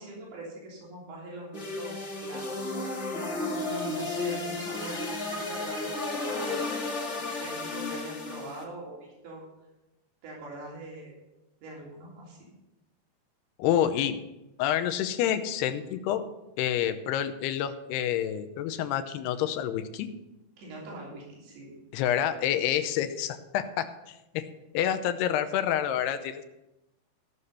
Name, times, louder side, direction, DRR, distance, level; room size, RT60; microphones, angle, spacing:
voice 1, 0.0-3.0 3.5-6.9 7.2-9.4 10.2-11.1 11.6-12.5 20.6-21.7, right 2 dB, 75° right, -4 dB, 5.1 m, -42 dB
sound 1, 1.5-8.6, left 2 dB, 70° left, 0.6 m, -33 dB
voice 2, 13.6-14.2 14.6-16.2 16.6-20.1 21.9-24.4 24.7-26.4, left 10 dB, 90° left, 9 dB, 2.8 m, -28 dB
15.5 x 6.7 x 5.6 m, 0.94 s
omnidirectional pair, 4.7 m